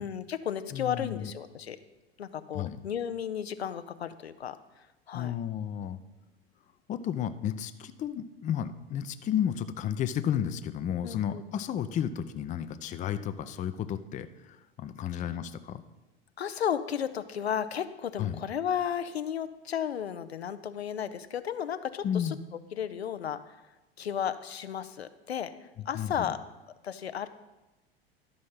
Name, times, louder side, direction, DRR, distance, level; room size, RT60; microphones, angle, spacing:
voice 1, 0.0-1.8 2.2-4.6 5.1-5.3 11.0-11.4 15.1-15.2 16.4-22.4 22.7-23.6 24.0-25.5 25.9-26.4 26.8-27.3, left 8 dB, 80° left, 11 dB, 0.6 m, -33 dB
voice 2, 0.7-1.3 2.5-2.8 5.1-6.0 6.9-15.8 18.2-18.4 22.0-22.4 25.9-26.3, left 9 dB, 25° left, 11 dB, 0.5 m, -32 dB
12.0 x 5.2 x 5.6 m, 1.0 s
figure-of-eight pair, 85°, 31 cm